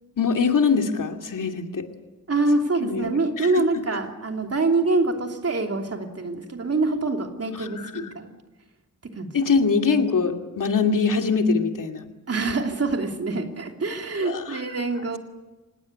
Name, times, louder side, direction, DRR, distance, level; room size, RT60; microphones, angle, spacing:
voice 1, 0.2-1.9 2.8-3.1 3.4-3.6 7.5-8.0 9.3-12.1 14.2-14.6, left 5 dB, 70° left, 5 dB, 2.5 m, -23 dB
voice 2, 2.3-8.3 9.0-9.3 12.3-15.2, right 3 dB, 45° right, 4 dB, 3.0 m, -25 dB
25.5 x 19.0 x 9.8 m, 1.1 s
wide cardioid pair, 135°, 33 cm